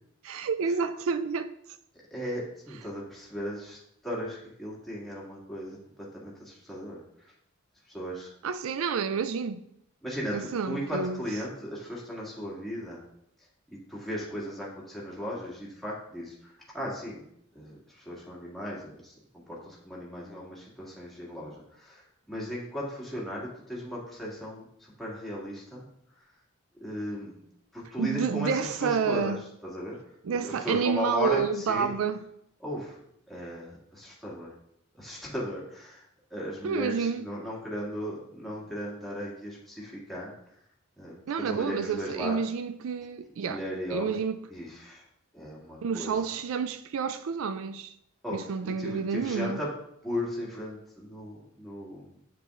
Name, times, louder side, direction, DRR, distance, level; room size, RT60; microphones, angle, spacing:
voice 1, 0.2-1.5 8.4-9.6 10.3-11.2 28.0-29.4 30.2-32.2 36.6-37.2 41.3-43.6 43.9-44.4 45.8-47.9 48.3-49.6, right 6 dB, 75° right, 0.4 m, -29 dB
voice 2, 2.1-3.8 4.0-7.3 7.9-8.3 10.0-13.0 13.7-17.2 17.5-25.9 26.8-27.4 27.7-29.3 29.6-30.0 30.4-31.9 32.6-33.0 33.3-34.5 34.9-40.3 41.0-42.3 43.4-44.2 44.5-45.0 45.3-46.2 48.2-49.7 50.0-52.2, equal, ahead, 2.0 m, -36 dB
8.0 x 7.4 x 2.5 m
head